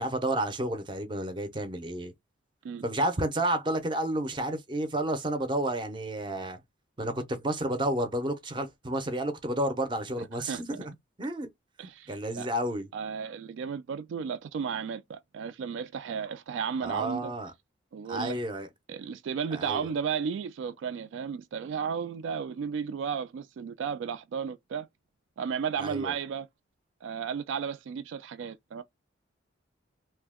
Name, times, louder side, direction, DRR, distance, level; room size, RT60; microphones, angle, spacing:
voice 1, 0.0-2.1 2.8-6.6 7.0-11.5 12.1-12.9 16.8-17.5 18.1-18.7 19.5-19.9 25.8-26.1, right 1 dB, 25° right, 0.5 m, -31 dB
voice 2, 10.2-10.9 11.8-12.5 12.9-17.3 17.9-18.4 18.9-24.9 25.4-26.5 27.0-28.8, right 6 dB, 85° right, 0.3 m, -34 dB
2.7 x 2.1 x 3.4 m
head